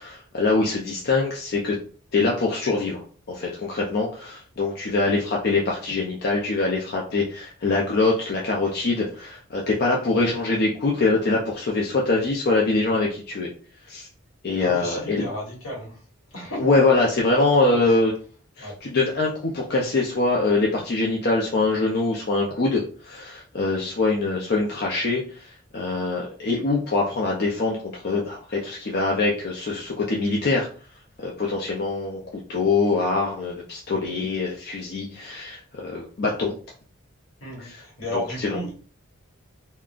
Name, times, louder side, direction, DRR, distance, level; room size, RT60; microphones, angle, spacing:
voice 1, 0.0-1.8 2.1-3.0 3.3-13.5 13.9-14.1 14.4-15.2 16.6-18.1 18.6-30.7 31.2-32.2 32.5-36.5 37.6-37.8 38.1-38.6, left 3 dB, 50° left, -2 dB, 0.5 m, -24 dB
voice 2, 14.6-16.0 16.3-16.9 17.3-18.0 18.6-18.8 37.4-38.7, left 1 dB, 75° left, -3 dB, 1.4 m, -33 dB
3.6 x 2.2 x 2.4 m, 0.40 s
head